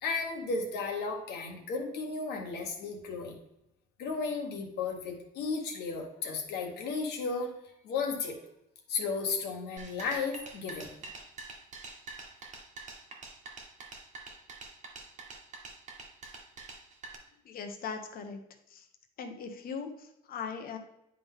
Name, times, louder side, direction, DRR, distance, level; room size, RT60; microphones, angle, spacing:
voice 1, 0.0-3.3 4.0-8.4 8.9-10.9, left 4 dB, 75° left, 1 dB, 1.4 m, -34 dB
sound 1, 9.8-17.1, right 3 dB, 45° right, 1.4 m, -46 dB
voice 2, 17.4-18.4 18.7-18.9 19.2-20.8, left 6 dB, 60° left, 5 dB, 1.1 m, -39 dB
10.0 x 3.6 x 3.7 m, 0.82 s
cardioid pair, 110°, 17 cm